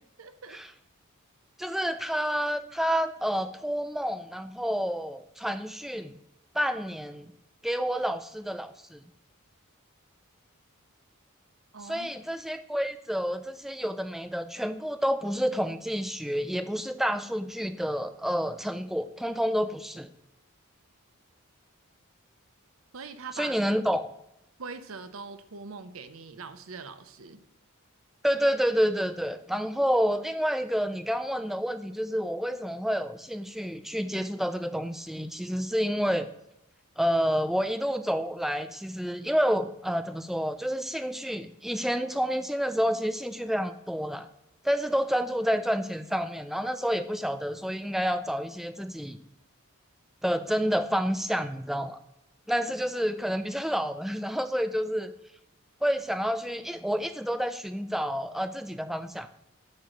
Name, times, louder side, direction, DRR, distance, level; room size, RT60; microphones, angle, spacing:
voice 1, 0.2-0.6 11.7-12.2 22.9-23.6 24.6-27.4, right 4 dB, 65° right, 10 dB, 0.7 m, -42 dB
voice 2, 1.6-6.1 6.5-7.3 7.6-9.0 11.8-20.1 23.3-24.1 28.2-36.3 37.0-44.3 44.6-49.2 50.2-52.0 52.5-55.1 55.8-59.3, equal, ahead, 9 dB, 0.3 m, -29 dB
8.2 x 3.1 x 6.4 m, 0.83 s
head